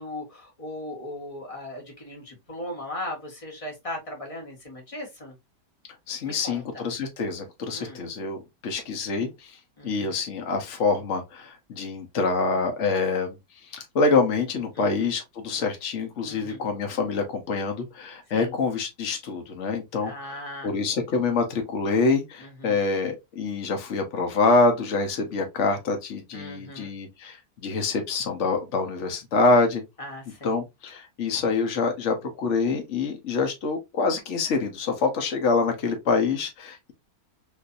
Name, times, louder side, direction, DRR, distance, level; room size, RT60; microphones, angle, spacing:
voice 1, 0.0-5.3 6.2-6.9 7.7-8.0 9.8-10.2 14.7-15.1 16.2-16.6 18.3-18.6 20.0-20.7 22.4-22.8 26.3-26.9 30.0-30.6, left 1 dB, 25° left, 1.2 m, -38 dB
voice 2, 6.1-9.6 9.8-29.8 30.4-36.9, left 4 dB, 55° left, 1.2 m, -26 dB
3.8 x 2.7 x 2.5 m
omnidirectional pair, 1.7 m